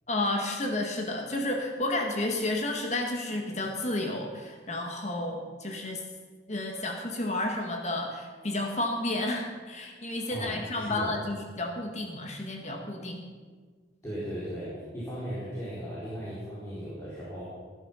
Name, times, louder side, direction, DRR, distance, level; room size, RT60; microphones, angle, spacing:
voice 1, 0.1-6.0 6.5-13.3, left 2 dB, 40° left, 2 dB, 1.7 m, -31 dB
voice 2, 10.3-11.2 14.0-17.4, equal, 15° left, -10 dB, 4.5 m, -37 dB
18.0 x 11.0 x 5.7 m, 1.5 s
head